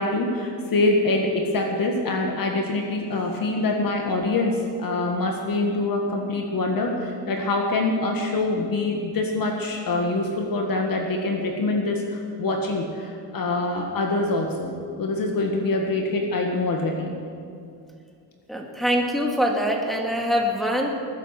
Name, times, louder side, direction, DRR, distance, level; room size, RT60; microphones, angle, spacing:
voice 1, 0.0-17.1, left 2 dB, 50° left, 2 dB, 1.8 m, -25 dB
voice 2, 18.5-20.9, equal, ahead, -1 dB, 2.2 m, -24 dB
20.0 x 10.0 x 6.0 m, 2.4 s
cardioid pair, 120°, 45 cm